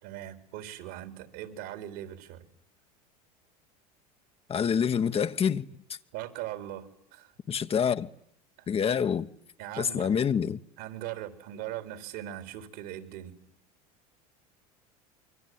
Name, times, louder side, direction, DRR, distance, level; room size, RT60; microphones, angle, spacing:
voice 1, 0.0-2.5 6.1-7.3 8.6-8.7 9.6-10.2 10.8-13.3, right 12 dB, 70° right, 4.0 m, -40 dB
voice 2, 4.5-5.7 7.5-8.1 8.7-9.3 9.8-10.6, left 7 dB, 30° left, 1.1 m, -26 dB
26.5 x 23.5 x 9.5 m
hypercardioid pair, 95°, 19 cm